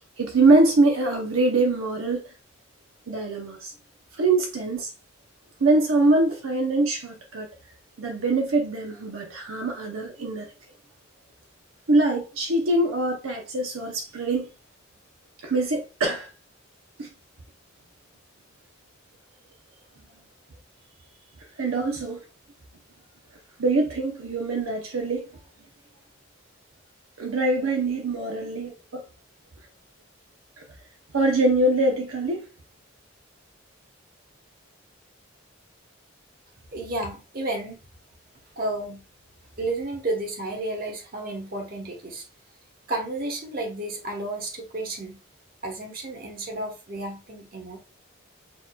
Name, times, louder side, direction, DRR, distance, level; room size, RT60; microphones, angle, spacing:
voice 1, 0.2-2.2 3.1-3.7 4.1-4.9 5.6-7.5 8.0-10.5 11.9-14.5 15.4-16.3 17.0-17.1 21.6-22.2 23.6-25.3 27.2-29.0 31.1-32.5, right 2 dB, 80° right, 0.8 m, -23 dB
voice 2, 36.7-37.8 38.6-39.0 39.6-42.3 42.9-45.2 45.6-47.8, right 2 dB, 45° right, 1.2 m, -32 dB
6.3 x 3.0 x 2.3 m
head